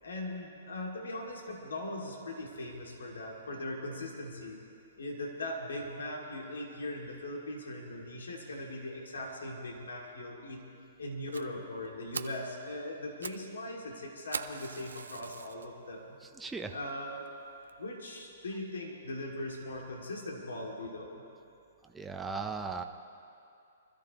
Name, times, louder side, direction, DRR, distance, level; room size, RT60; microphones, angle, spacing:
voice 1, 0.0-4.6 5.0-10.6 11.0-16.2 16.7-17.3 17.8-21.2, left 1 dB, 85° left, 0 dB, 2.5 m, -40 dB
Fire, 11.3-11.4 11.8-11.9 12.1-12.4 13.0-13.4 13.7-13.8 14.3-15.7 16.2-16.3 16.9-17.0 17.3-17.4 17.7-17.8, right 5 dB, 90° right, 0.6 m, -41 dB
voice 2, 16.2-16.7 21.9-22.8, right 4 dB, 10° right, 3 dB, 0.8 m, -37 dB
24.0 x 13.5 x 3.1 m, 2.6 s
hypercardioid pair, 135°, 0 cm